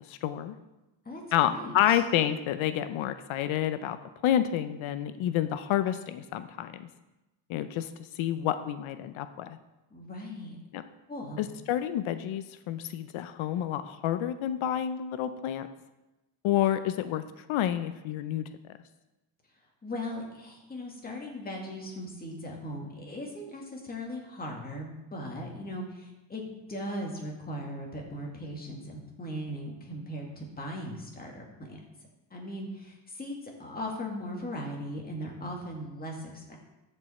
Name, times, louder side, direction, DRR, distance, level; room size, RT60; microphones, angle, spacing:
voice 1, 0.1-0.5 1.3-4.0 4.2-6.8 7.5-7.9 8.2-9.6 10.7-10.8 11.4-15.7 16.4-17.2 17.5-18.4, left 11 dB, 75° left, 11 dB, 0.7 m, -29 dB
voice 2, 1.1-2.0 9.9-10.6 11.1-11.4 19.8-31.8 32.3-36.6, equal, 20° left, -1 dB, 2.0 m, -38 dB
13.5 x 5.4 x 4.3 m, 1.0 s
cardioid pair, 135°, 48 cm